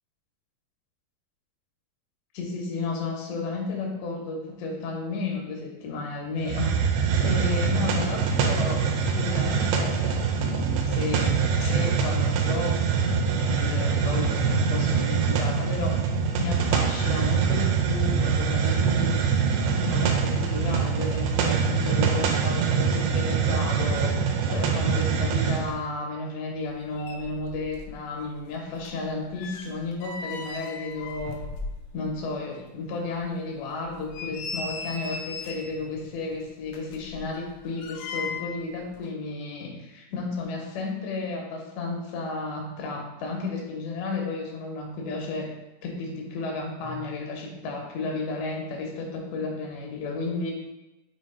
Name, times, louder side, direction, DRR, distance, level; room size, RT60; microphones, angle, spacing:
voice 1, 2.3-6.7 7.2-12.8 13.5-16.0 16.4-19.2 19.8-31.4 31.9-45.5 45.8-50.5, left 3 dB, 75° left, -1 dB, 3.2 m, -33 dB
Hiss, 6.4-25.7, right 6 dB, 80° right, 2.9 m, -24 dB
sound 1, 26.7-26.8 27.0-28.0 28.2-32.2 32.6-32.7 33.2-33.3 33.9-35.8 36.7-38.7 38.9-39.1, left 4 dB, 90° left, 3.2 m, -37 dB
7.5 x 3.0 x 4.3 m, 1.0 s
omnidirectional pair, 5.3 m